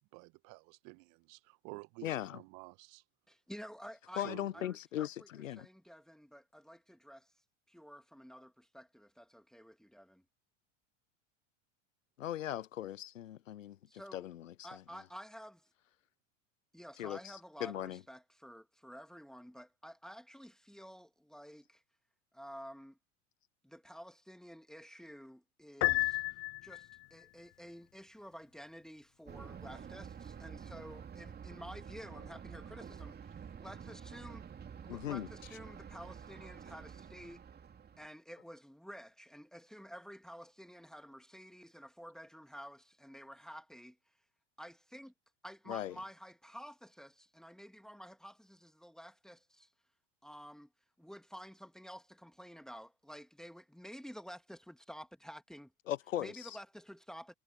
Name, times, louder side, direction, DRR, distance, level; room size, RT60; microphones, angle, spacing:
voice 1, 0.0-3.0 4.2-4.6, right 29 dB, 50° right, 1.2 m, -51 dB
voice 2, 2.0-2.4 4.2-5.7 12.2-13.8 14.1-14.8 17.0-18.0 34.9-35.3 45.7-45.9 55.9-56.6, left 12 dB, 80° left, 0.9 m, -39 dB
voice 3, 3.3-7.3 7.7-10.2 13.9-14.3 14.6-15.7 16.7-21.8 22.3-23.0 23.6-26.2 26.6-34.5 34.8-37.4 38.0-44.0 44.6-45.1 45.4-49.7 50.2-50.7 51.0-55.7 56.2-57.3, equal, ahead, 2.7 m, -51 dB
Piano, 25.8-27.1, left 22 dB, 40° left, 0.6 m, -32 dB
Thunder, 29.3-38.1, right 7 dB, 25° right, 2.8 m, -49 dB
hypercardioid pair, 80°, 39 cm